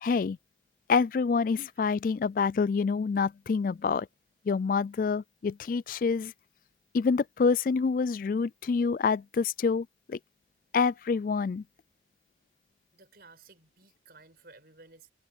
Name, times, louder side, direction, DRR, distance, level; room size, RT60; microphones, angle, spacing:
voice 1, 0.0-0.4 0.9-4.1 4.5-6.3 6.9-10.2 10.7-11.6, left 5 dB, 50° left, 0.3 m, -27 dB
voice 2, 12.9-15.1, right 3 dB, 55° right, 6.0 m, -55 dB
head